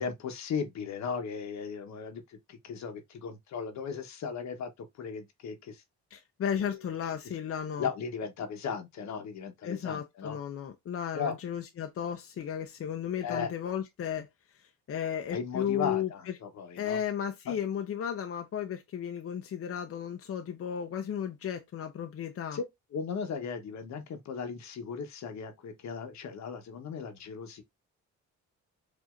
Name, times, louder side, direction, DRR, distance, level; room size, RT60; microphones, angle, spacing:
voice 1, 0.0-5.8 6.6-6.9 7.8-10.4 11.1-11.4 13.2-13.5 15.3-17.0 17.5-17.6 22.5-22.6 22.9-27.6, left 6 dB, 70° left, 1.1 m, -36 dB
voice 2, 6.1-7.9 9.6-14.3 14.5-16.3 16.8-22.6, left 8 dB, 50° left, 0.7 m, -34 dB
5.0 x 2.7 x 2.4 m
cardioid pair, 105°, 29 cm